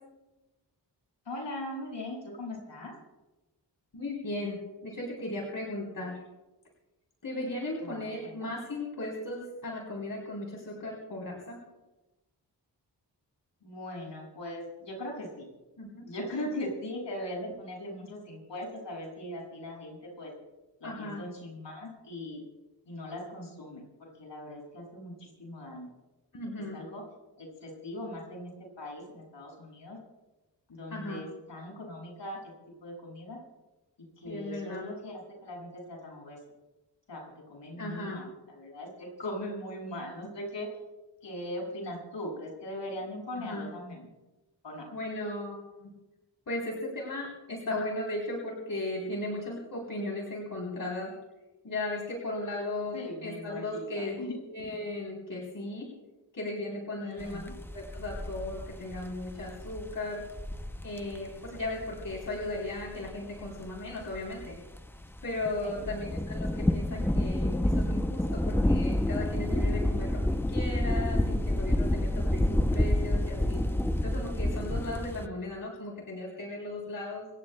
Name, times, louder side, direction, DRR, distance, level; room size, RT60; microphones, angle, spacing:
voice 1, 1.2-2.9 7.8-8.3 13.6-15.4 16.0-20.3 20.8-22.4 22.9-25.9 26.6-27.0 27.4-30.0 30.7-32.4 32.8-33.4 34.2-36.4 37.1-37.2 37.5-40.7 41.2-44.1 44.6-44.8 52.9-54.3 57.0-57.6 65.6-65.9, left 1 dB, 75° left, -1 dB, 6.5 m, -40 dB
voice 2, 3.9-4.6 4.8-6.2 7.2-11.6 15.8-16.1 20.8-21.2 26.3-26.8 30.9-31.2 34.2-34.9 37.8-38.2 43.4-43.7 44.9-45.9 46.5-51.1 51.6-54.2 54.5-55.9 56.3-60.2 60.8-64.6 65.2-73.6 74.0-77.3, left 2 dB, 50° left, -2 dB, 3.5 m, -36 dB
sound 1, 57.2-75.3, left 1 dB, 5° left, 0.6 m, -29 dB
26.5 x 16.5 x 2.2 m, 1.1 s
wide cardioid pair, 120°, 43 cm